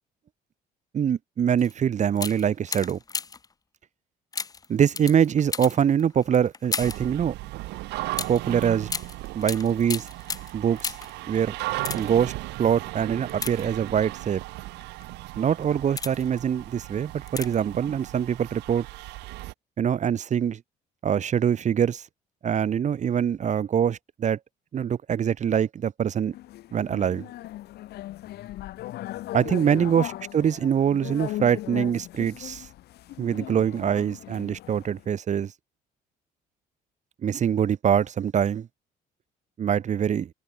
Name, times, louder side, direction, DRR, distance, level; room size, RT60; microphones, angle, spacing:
voice 1, 0.9-3.0 4.7-7.3 8.3-8.9 9.3-10.1 10.5-10.9 11.3-11.6 12.0-12.3 12.6-14.4 15.4-18.9 19.8-20.6 21.0-22.0 22.4-24.4 24.7-26.3 26.7-27.3 29.3-30.0 30.3-32.7 33.2-35.5 37.2-38.7 39.6-40.3, right 8 dB, 45° right, 1.9 m, -24 dB
sound 1, 1.6-1.7 2.1-3.5 4.3-7.1 8.1-11.2 11.7-12.3 13.3-14.1 14.8-15.0 15.6-16.4 17.3-17.7 18.0-18.1, left 5 dB, 20° left, 0.7 m, -35 dB
sound 2, 6.8-19.5, right 20 dB, 90° right, 1.8 m, -36 dB
sound 3, 26.3-35.0, left 15 dB, 75° left, 3.7 m, -38 dB
cardioid pair, 110°, 17 cm